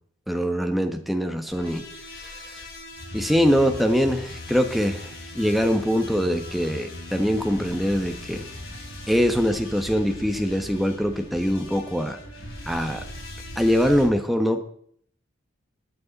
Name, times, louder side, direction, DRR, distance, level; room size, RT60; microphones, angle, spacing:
voice 1, 0.3-1.8 2.2-2.3 3.1-5.0 5.3-8.4 9.1-12.2 12.7-13.0 13.6-14.6, equal, ahead, 5 dB, 1.1 m, -23 dB
sound 1, 1.5-14.1, left 1 dB, 80° left, 3.8 m, -39 dB
20.0 x 8.5 x 4.1 m, 0.62 s
head